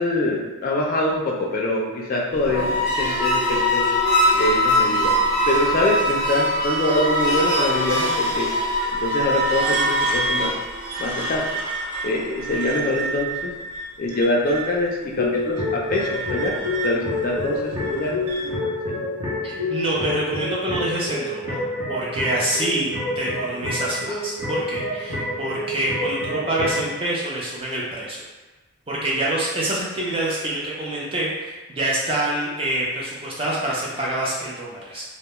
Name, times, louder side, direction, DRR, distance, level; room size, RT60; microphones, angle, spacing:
voice 1, 0.0-3.9 4.3-5.2 5.5-8.5 9.0-10.5 11.0-11.4 12.0-13.5 14.0-16.5 16.8-19.1, left 1 dB, 40° left, -2 dB, 0.3 m, -24 dB
sound 1, 2.3-11.7, left 1 dB, 45° right, 1.3 m, -22 dB
sound 2, 8.2-14.8 15.2-18.5, right 3 dB, 85° right, 0.4 m, -30 dB
sound 3, 15.1-26.9, left 2 dB, 70° right, 0.9 m, -28 dB
voice 2, 19.4-21.6 21.9-22.9 23.2-28.2 28.9-35.0, right 1 dB, 25° right, -5 dB, 0.5 m, -26 dB
2.2 x 2.1 x 2.9 m, 1.2 s
head